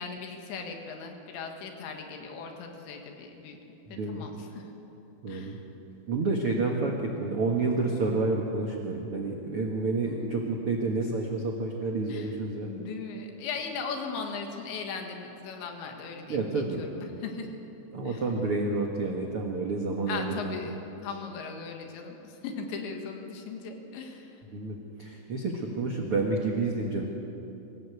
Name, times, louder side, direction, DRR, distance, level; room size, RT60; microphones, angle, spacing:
voice 1, 0.0-3.6 3.9-4.7 5.3-5.6 10.0-10.5 12.1-12.3 12.6-17.5 18.0-18.2 20.1-20.8 21.0-24.4, left 5 dB, 85° left, 3 dB, 3.9 m, -38 dB
voice 2, 3.9-4.3 5.2-5.6 6.1-12.7 16.3-16.8 17.9-20.5 24.5-27.0, right 3 dB, 60° right, 0 dB, 1.5 m, -29 dB
25.5 x 16.0 x 8.2 m, 2.9 s
omnidirectional pair, 5.0 m